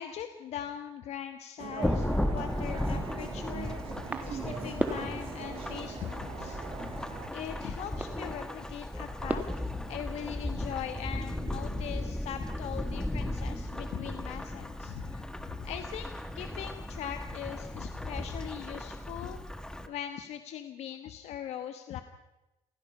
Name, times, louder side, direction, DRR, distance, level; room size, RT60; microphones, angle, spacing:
voice 1, 0.0-3.8 4.2-6.6 7.3-9.4 9.9-19.4 19.8-22.0, left 10 dB, 80° left, 8 dB, 1.2 m, -40 dB
sound 1, 1.6-7.3, right 8 dB, 55° right, 1.6 m, -42 dB
Thunderstorm / Rain, 1.8-19.9, left 1 dB, 5° left, 1.3 m, -36 dB
sound 2, 3.3-10.3, right 2 dB, 15° right, 1.8 m, -40 dB
29.5 x 16.5 x 5.5 m, 1.0 s
cardioid pair, 140°, 11 cm